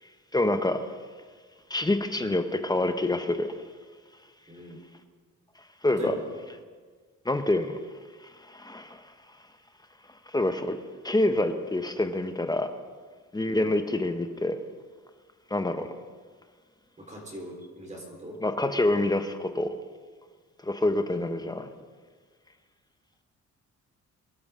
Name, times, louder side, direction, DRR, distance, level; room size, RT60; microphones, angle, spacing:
voice 1, 0.3-0.9 1.7-3.6 5.8-6.1 7.2-7.8 8.2-9.0 10.3-12.7 13.3-14.6 15.5-15.9 18.4-19.7 20.6-21.7, left 2 dB, 15° left, 0.9 m, -27 dB
voice 2, 4.5-4.8 6.0-6.2 17.0-18.4 21.1-21.3, right 1 dB, 25° right, 4.2 m, -40 dB
23.0 x 12.0 x 3.7 m
cardioid pair, 90°, 30 cm